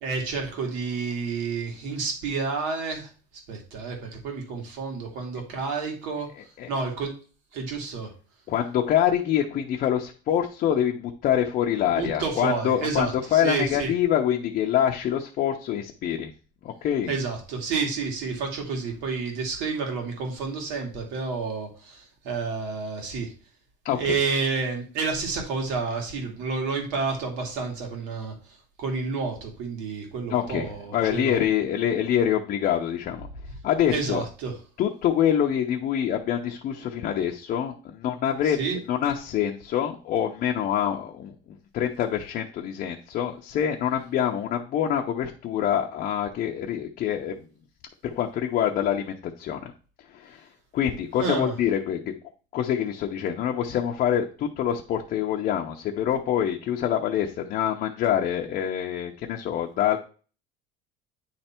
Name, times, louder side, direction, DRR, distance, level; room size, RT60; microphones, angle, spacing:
voice 1, 0.0-3.1 3.5-6.3 6.7-7.1 7.5-8.1 12.0-13.9 17.1-23.3 23.9-31.4 33.9-34.5 38.4-38.8 51.2-51.5, right 4 dB, 75° right, 2 dB, 2.5 m, -30 dB
voice 2, 8.5-16.3 16.6-17.1 23.8-24.2 30.3-33.3 33.6-34.2 34.8-38.6 38.9-47.4 48.0-49.7 50.1-50.4 50.7-52.0 52.5-60.0, left 10 dB, 45° left, 1 dB, 0.8 m, -25 dB
9.6 x 3.3 x 4.4 m, 0.38 s
cardioid pair, 150°, 19 cm